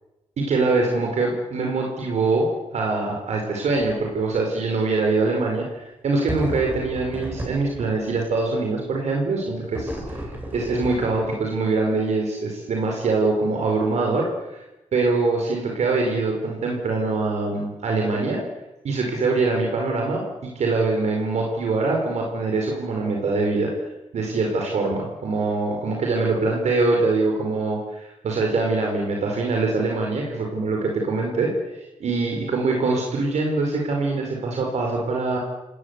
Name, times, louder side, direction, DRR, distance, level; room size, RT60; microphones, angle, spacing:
voice 1, 0.4-14.6 14.9-18.4 18.8-23.7 24.1-35.4, right 3 dB, 65° right, 0 dB, 5.2 m, -23 dB
sound 1, 3.7-4.0 4.3-4.4 6.3-8.2 9.7-11.5, right 1 dB, 15° right, 7.0 m, -34 dB
29.5 x 18.5 x 8.4 m, 1.0 s
wide cardioid pair, 120°, 12 cm